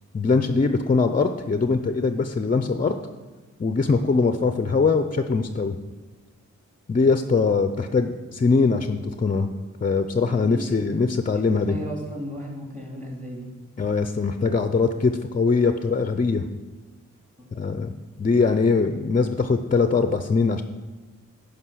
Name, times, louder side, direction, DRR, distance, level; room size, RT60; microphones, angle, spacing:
voice 1, 0.1-2.9 3.6-5.8 6.9-9.5 9.8-11.7 13.8-16.5 17.5-17.9 18.2-20.6, left 4 dB, 25° left, 8 dB, 0.5 m, -22 dB
voice 2, 10.3-11.1 11.7-13.5, equal, 25° right, -2 dB, 3.5 m, -35 dB
10.0 x 5.3 x 6.2 m, 1.3 s
cardioid pair, 70°, 31 cm